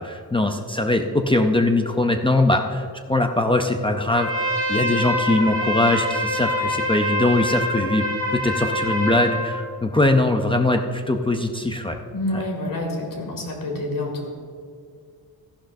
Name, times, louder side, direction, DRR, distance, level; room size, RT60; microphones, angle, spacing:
voice 1, 0.0-8.0 8.3-12.0 12.3-12.4, left 2 dB, 15° left, 4 dB, 0.5 m, -21 dB
Trumpet, 4.1-9.5, equal, 10° right, 3.2 m, -25 dB
voice 2, 12.1-14.3, left 1 dB, 55° left, 0 dB, 2.3 m, -28 dB
14.5 x 11.5 x 2.6 m, 2.1 s
wide cardioid pair, 165°, 40 cm